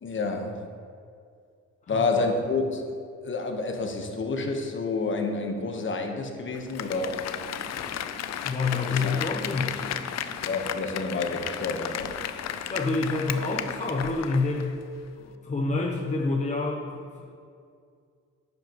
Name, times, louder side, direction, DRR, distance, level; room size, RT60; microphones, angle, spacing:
voice 1, 0.0-0.6 1.9-2.9 3.2-7.3 8.9-9.2 10.5-12.1, left 3 dB, 40° left, 4 dB, 1.2 m, -29 dB
voice 2, 1.8-2.3 8.4-10.1 12.7-14.8 15.2-17.3, left 3 dB, 25° left, 0 dB, 0.8 m, -28 dB
Applause, 6.5-14.7 15.1-15.2, left 10 dB, 60° left, 0.5 m, -34 dB
sound 1, 6.9-13.9, right 1 dB, 5° right, 2.2 m, -48 dB
10.5 x 8.1 x 3.0 m, 2.3 s
cardioid pair, 90°, 30 cm